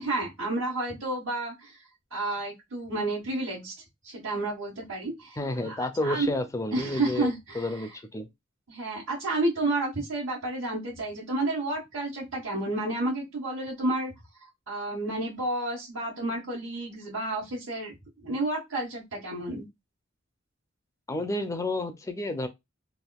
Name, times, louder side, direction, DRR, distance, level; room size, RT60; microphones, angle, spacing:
voice 1, 0.0-1.7 2.1-3.7 4.0-5.4 5.6-6.3 6.7-7.7 8.7-14.1 14.7-17.9 18.2-19.7, right 2 dB, 80° right, 1.4 m, -30 dB
voice 2, 5.4-7.3 7.5-8.3 21.1-22.5, left 1 dB, 15° left, 0.3 m, -30 dB
3.4 x 2.5 x 2.2 m
head